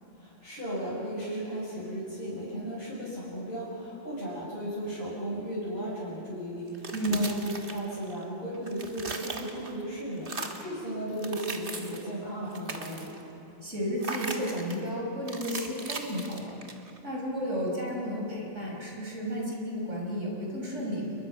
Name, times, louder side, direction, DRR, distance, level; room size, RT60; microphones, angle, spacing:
voice 1, 0.2-13.1, right 1 dB, 40° left, -9 dB, 6.4 m, -35 dB
sound 1, 6.7-8.2 8.5-9.8 10.2-10.7 11.1-12.1 12.4-13.2 14.0-14.8 15.3-17.0, right 3 dB, 40° right, 1.8 m, -38 dB
voice 2, 6.9-7.2 13.6-16.6 17.0-21.2, equal, 60° right, -2 dB, 5.7 m, -32 dB
29.5 x 22.0 x 6.0 m, 2.9 s
omnidirectional pair, 1.4 m